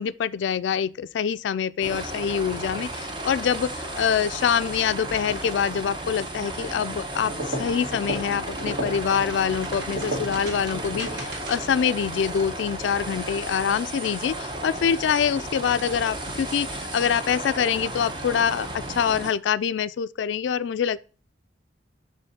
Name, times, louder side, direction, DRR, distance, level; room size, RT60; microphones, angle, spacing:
voice 1, 0.0-21.0, left 7 dB, 85° left, 0.3 m, -25 dB
sound 1, 1.8-19.3, right 1 dB, 25° right, 0.8 m, -34 dB
sound 2, 7.2-11.8, right 1 dB, 75° right, 2.1 m, -34 dB
6.9 x 3.1 x 5.7 m
head